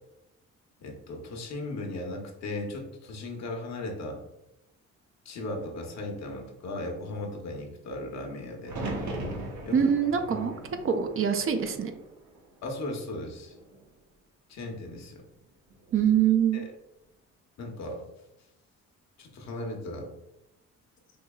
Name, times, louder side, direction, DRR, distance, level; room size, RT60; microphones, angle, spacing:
voice 1, 0.8-4.2 5.2-8.8 9.6-9.8 10.3-10.5 12.6-13.6 14.5-15.2 16.5-16.7 17.6-18.0 19.2-20.1, left 2 dB, 60° left, 2 dB, 0.9 m, -37 dB
sound 1, 8.6-12.7 13.1-13.8 15.7-16.2, right 1 dB, 70° right, 0.9 m, -39 dB
voice 2, 9.7-10.5 10.8-11.9 15.9-16.6, right 8 dB, 45° right, 7 dB, 0.5 m, -24 dB
4.6 x 2.7 x 2.3 m, 0.92 s
cardioid pair, 90°, 30 cm